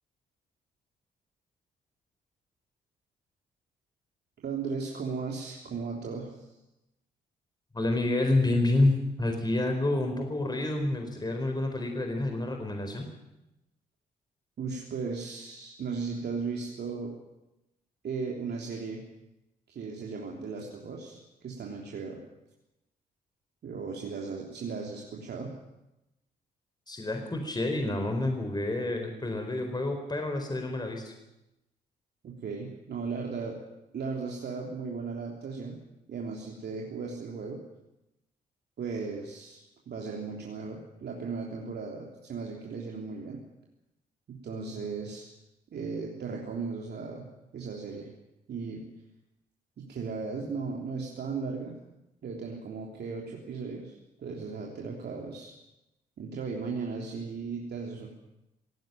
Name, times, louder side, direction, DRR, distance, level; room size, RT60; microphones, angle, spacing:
voice 1, 4.4-6.4 14.6-17.1 18.0-19.0 19.7-22.2 23.6-25.5 32.2-33.6 33.9-35.8 36.1-37.6 38.8-43.4 44.3-45.3 45.7-47.3 47.5-48.1 48.5-48.8 49.8-51.8 52.2-55.5 56.2-58.1, right 4 dB, 55° right, 0 dB, 3.3 m, -36 dB
voice 2, 7.7-13.1 26.9-31.1, left 2 dB, 20° left, 4 dB, 4.4 m, -28 dB
17.5 x 17.5 x 9.1 m, 0.92 s
hypercardioid pair, 45°, 21 cm